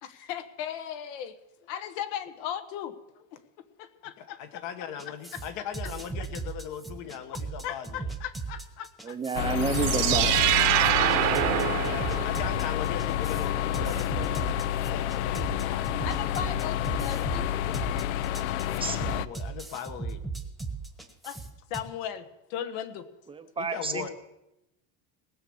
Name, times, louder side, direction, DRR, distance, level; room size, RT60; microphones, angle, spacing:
voice 1, 0.0-1.4 1.7-3.4 3.8-5.7 7.6-9.2 13.3-13.4 16.0-17.5 21.2-21.4 21.7-23.1, left 10 dB, 70° left, 11 dB, 1.4 m, -38 dB
voice 2, 4.2-8.0 11.8-14.6 14.9-15.9 18.6-20.2 23.6-24.1, left 8 dB, 55° left, 10 dB, 1.4 m, -39 dB
sound 1, 5.0-21.8, right 4 dB, ahead, 1.2 m, -37 dB
voice 3, 9.0-10.5 18.8-19.0 23.3-24.1, right 5 dB, 15° right, 8 dB, 0.6 m, -30 dB
sound 2, 9.3-19.3, left 11 dB, 90° left, 0.6 m, -29 dB
sound 3, 9.5-12.6, right 14 dB, 65° right, 1.1 m, -25 dB
19.0 x 6.5 x 7.1 m, 0.91 s
cardioid pair, 155°, 35 cm